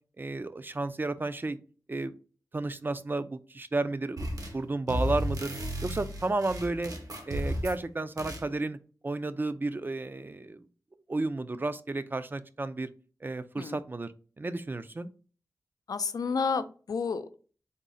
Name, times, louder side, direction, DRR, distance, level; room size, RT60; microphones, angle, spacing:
voice 1, 0.2-1.6 1.9-2.1 2.5-4.3 4.5-5.5 5.8-6.9 7.3-8.8 9.0-10.6 11.1-12.9 13.2-14.1 14.4-15.1, right 2 dB, 30° right, 12 dB, 0.3 m, -32 dB
sound 1, 4.2-4.6 4.9-7.8 8.2-8.5, equal, 70° right, 0.9 m, -34 dB
voice 2, 15.9-17.3, left 5 dB, 75° left, 11 dB, 0.4 m, -31 dB
3.7 x 2.0 x 3.8 m, 0.38 s
wide cardioid pair, 60°, 6 cm